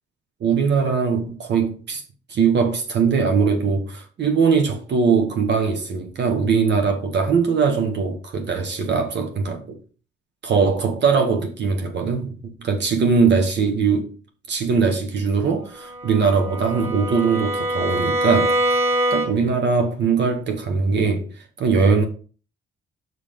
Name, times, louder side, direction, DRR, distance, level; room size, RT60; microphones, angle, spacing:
voice 1, 0.4-2.0 2.3-9.8 10.4-14.1 14.5-18.8 19.1-21.3 21.6-22.0, right 5 dB, 60° right, 1.4 m, -21 dB
Bowed string instrument, 15.8-19.6, right 1 dB, 30° right, 2.6 m, -24 dB
5.9 x 5.8 x 5.2 m
cardioid pair, 90°, 20 cm